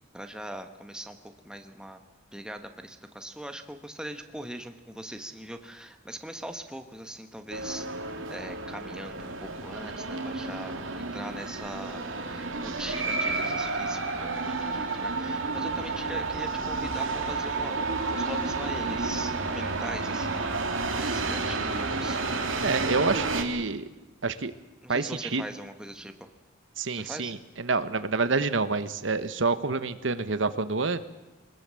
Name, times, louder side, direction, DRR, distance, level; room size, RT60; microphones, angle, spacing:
voice 1, 0.1-2.0 2.3-20.4 20.9-22.2 24.8-26.3 26.9-27.3, right 1 dB, 5° right, 6 dB, 1.4 m, -41 dB
sound 1, 7.5-23.4, right 3 dB, 90° right, 2.6 m, -31 dB
voice 2, 22.6-23.8 24.2-24.5 24.9-25.4 26.8-31.0, right 4 dB, 70° right, 12 dB, 1.1 m, -27 dB
23.5 x 20.0 x 7.6 m, 1.0 s
head